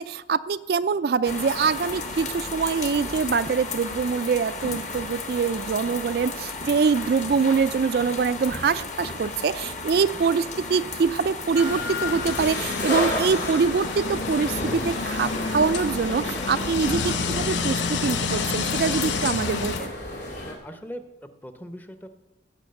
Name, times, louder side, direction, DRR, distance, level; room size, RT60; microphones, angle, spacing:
voice 1, 0.0-19.9, right 5 dB, 55° right, 13 dB, 0.3 m, -24 dB
sound 1, 1.2-19.9, left 3 dB, 40° left, 1.2 m, -35 dB
sound 2, 11.5-20.5, left 1 dB, 65° left, 2.8 m, -32 dB
sound 3, 11.6-19.8, left 5 dB, 85° left, 0.8 m, -30 dB
voice 2, 20.4-22.1, equal, 10° left, 9 dB, 0.7 m, -41 dB
15.0 x 6.1 x 7.7 m, 1.1 s
head